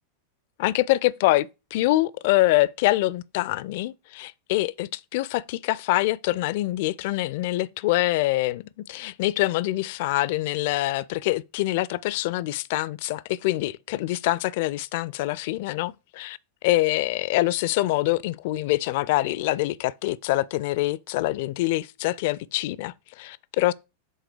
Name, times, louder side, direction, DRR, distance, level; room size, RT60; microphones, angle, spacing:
voice 1, 0.6-16.4 16.6-23.7, left 17 dB, 50° left, 0.4 m, -25 dB
7.9 x 3.7 x 4.7 m
figure-of-eight pair, 90°, 0 cm